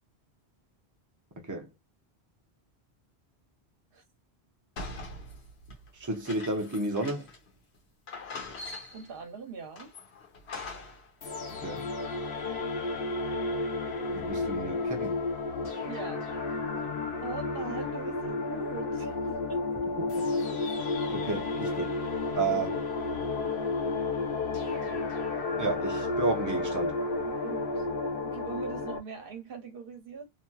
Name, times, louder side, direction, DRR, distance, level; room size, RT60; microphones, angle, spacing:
sound 1, 4.8-7.5 7.7-7.8 8.1-9.2 9.8-11.1, left 2 dB, 85° left, 1.2 m, -42 dB
voice 1, 6.0-7.3 11.6-11.8 14.1-15.2 20.1-20.3 21.1-21.9 22.3-22.8 25.6-27.0, right 3 dB, 20° right, 0.6 m, -32 dB
voice 2, 8.9-9.9 15.8-16.5 17.2-19.7 27.2-30.3, right 5 dB, 60° right, 1.0 m, -42 dB
sound 2, 11.2-29.0, left 3 dB, 60° left, 0.9 m, -32 dB
2.9 x 2.7 x 2.2 m
omnidirectional pair, 1.1 m